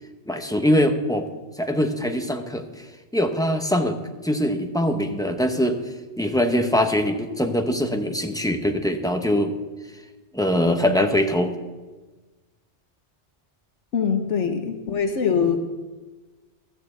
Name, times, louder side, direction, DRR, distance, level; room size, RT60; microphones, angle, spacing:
voice 1, 0.3-1.3 1.6-2.9 3.1-4.0 4.2-5.8 6.2-9.5 10.3-11.5, equal, 5° left, 5 dB, 0.8 m, -22 dB
voice 2, 13.9-15.6, left 6 dB, 75° left, 6 dB, 1.3 m, -23 dB
13.5 x 7.0 x 7.9 m, 1.2 s
omnidirectional pair, 1.3 m